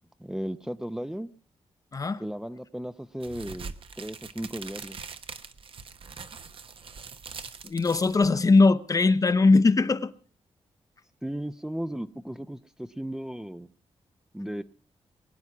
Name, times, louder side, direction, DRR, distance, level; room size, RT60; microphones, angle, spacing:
voice 1, 0.2-1.3 2.2-5.0 11.2-13.7 14.3-14.6, right 1 dB, 5° right, 0.6 m, -35 dB
sound 1, 3.2-8.7, right 5 dB, 55° right, 1.1 m, -43 dB
voice 2, 7.6-10.1, left 3 dB, 30° left, 0.8 m, -20 dB
21.5 x 9.7 x 5.9 m
wide cardioid pair, 120°, 11 cm